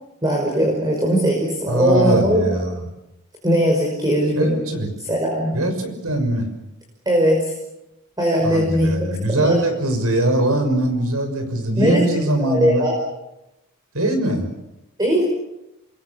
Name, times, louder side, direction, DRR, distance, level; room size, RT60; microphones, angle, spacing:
voice 1, 0.2-2.4 3.4-4.6 5.0-5.5 7.1-7.5 8.2-8.9 9.3-9.6 11.7-12.0 12.4-12.9 15.0-15.2, equal, 20° right, -1 dB, 5.5 m, -19 dB
voice 2, 1.7-2.7 4.4-4.9 5.5-6.5 8.4-12.8 13.9-14.5, right 1 dB, 80° right, 6 dB, 6.2 m, -21 dB
28.0 x 22.5 x 7.1 m, 0.92 s
head